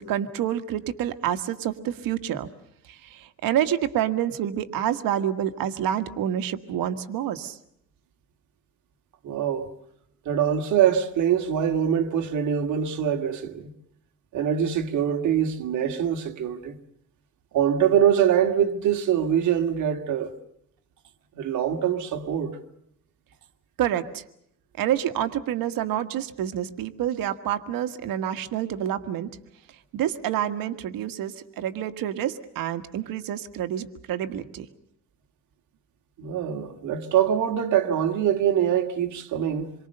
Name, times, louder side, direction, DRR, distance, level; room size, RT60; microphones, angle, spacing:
voice 1, 0.0-2.5 2.9-7.6 23.8-24.2 24.8-29.3 29.9-34.7, right 10 dB, 80° right, 1.6 m, -28 dB
voice 2, 9.2-9.7 10.2-13.7 14.3-16.8 17.5-20.4 21.3-22.6 36.2-39.7, right 9 dB, 60° right, 2.1 m, -24 dB
27.0 x 23.5 x 6.7 m
cardioid pair, 175°, 34 cm